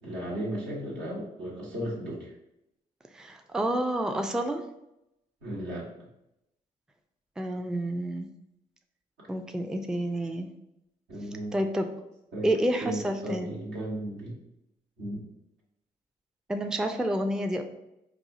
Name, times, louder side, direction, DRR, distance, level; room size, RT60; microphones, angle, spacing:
voice 1, 0.0-2.3 5.4-5.9 11.1-11.5 12.3-12.5 12.8-14.3 15.0-15.2, right 1 dB, 80° right, -4 dB, 1.1 m, -35 dB
voice 2, 3.1-4.6 7.4-8.3 9.3-10.5 11.5-11.9 12.4-13.5 16.5-17.6, right 1 dB, 5° right, 6 dB, 0.4 m, -29 dB
4.1 x 2.3 x 2.7 m, 0.85 s
hypercardioid pair, 45°, 18 cm